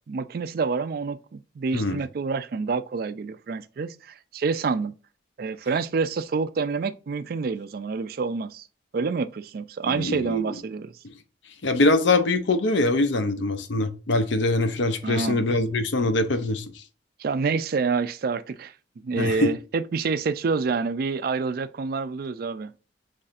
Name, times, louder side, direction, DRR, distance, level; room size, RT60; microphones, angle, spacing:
voice 1, 0.1-4.9 5.4-8.7 8.9-10.9 15.0-15.4 17.2-18.7 19.0-22.7, right 4 dB, 50° right, 0.3 m, -27 dB
voice 2, 9.8-10.5 11.6-16.6 19.2-19.5, left 2 dB, 70° left, 0.7 m, -23 dB
5.5 x 3.2 x 2.5 m
head